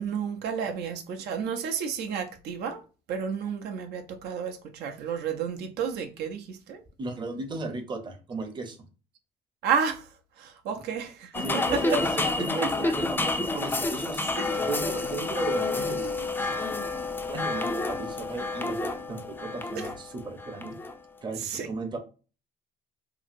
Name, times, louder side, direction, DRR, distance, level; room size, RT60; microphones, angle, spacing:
voice 1, 0.0-2.8 3.1-6.8 9.6-10.1 10.4-12.0 12.6-12.7 14.4-14.5 19.8-19.9 21.4-21.7, right 6 dB, 75° right, 0.5 m, -31 dB
voice 2, 7.0-8.8 10.7-10.8 11.4-16.5 17.3-20.7 21.2-22.0, right 3 dB, 25° right, 0.6 m, -35 dB
sound 1, 11.3-20.9, left 3 dB, 10° left, 0.3 m, -29 dB
2.7 x 2.6 x 2.5 m
cardioid pair, 110°, 17 cm